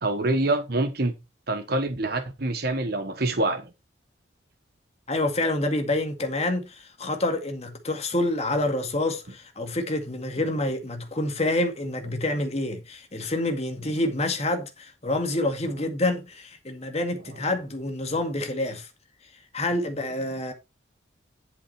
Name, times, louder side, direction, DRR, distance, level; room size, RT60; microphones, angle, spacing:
voice 1, 0.0-1.2 1.5-3.7, right 2 dB, 50° right, 1.2 m, -26 dB
voice 2, 5.1-18.9 19.5-20.5, left 2 dB, 30° left, 2.0 m, -27 dB
11.0 x 5.7 x 4.3 m
head